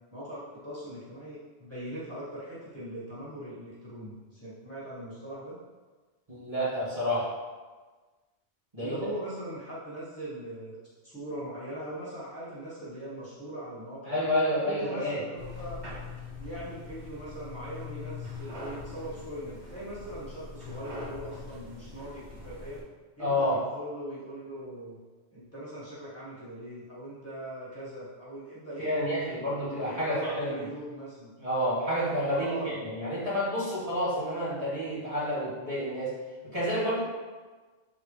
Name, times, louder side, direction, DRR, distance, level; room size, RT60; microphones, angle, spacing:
voice 1, 0.1-5.6 8.8-10.8 11.0-14.3 14.6-15.7 16.4-22.8 23.2-25.0 25.3-29.4 29.8-31.3 32.3-32.7, right 1 dB, 15° left, -10 dB, 1.9 m, -40 dB
voice 2, 6.3-7.3 8.7-8.9 14.1-15.2 23.2-23.6 28.8-30.6 31.4-36.1 36.5-37.0, equal, 30° right, -10 dB, 1.8 m, -29 dB
sound 1, 15.4-22.8, left 4 dB, 75° right, 2.4 m, -42 dB
6.8 x 4.2 x 3.3 m, 1.3 s
omnidirectional pair, 1.1 m